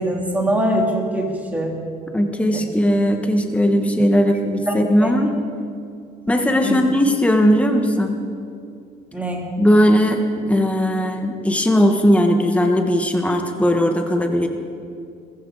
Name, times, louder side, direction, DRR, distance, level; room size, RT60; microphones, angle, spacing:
voice 1, 0.0-1.7 2.5-2.6 4.7-4.8 5.0-5.1 6.6-6.8 9.1-9.4, right 1 dB, 10° right, -1 dB, 3.1 m, -22 dB
voice 2, 2.1-5.4 6.3-8.2 9.6-14.5, equal, 5° left, 4 dB, 1.3 m, -18 dB
20.5 x 15.0 x 4.0 m, 2.4 s
cardioid pair, 110°, 17 cm